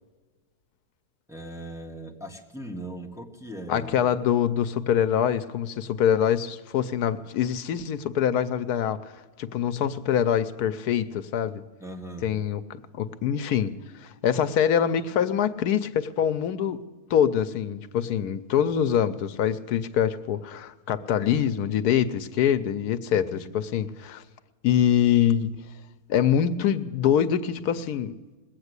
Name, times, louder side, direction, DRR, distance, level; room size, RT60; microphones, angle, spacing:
voice 1, 1.3-4.1 11.8-12.3 23.1-23.5, right 1 dB, ahead, -1 dB, 1.6 m, -39 dB
voice 2, 3.7-9.1 9.4-11.6 12.2-12.6 13.0-16.8 17.1-24.2 24.6-25.6 26.1-28.1, left 9 dB, 80° left, 12 dB, 1.2 m, -24 dB
21.0 x 8.4 x 8.1 m, 1.3 s
omnidirectional pair, 1.6 m